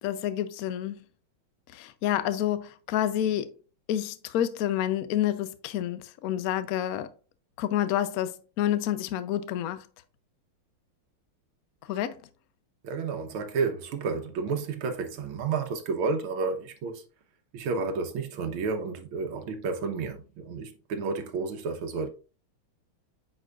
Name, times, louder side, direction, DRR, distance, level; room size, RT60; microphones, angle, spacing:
voice 1, 0.0-1.0 1.7-3.5 3.9-7.1 7.6-9.9 11.8-12.2, left 11 dB, 85° left, 0.8 m, -29 dB
voice 2, 12.8-17.0 17.5-22.1, right 4 dB, 85° right, 1.8 m, -31 dB
9.1 x 4.5 x 2.4 m
omnidirectional pair, 2.3 m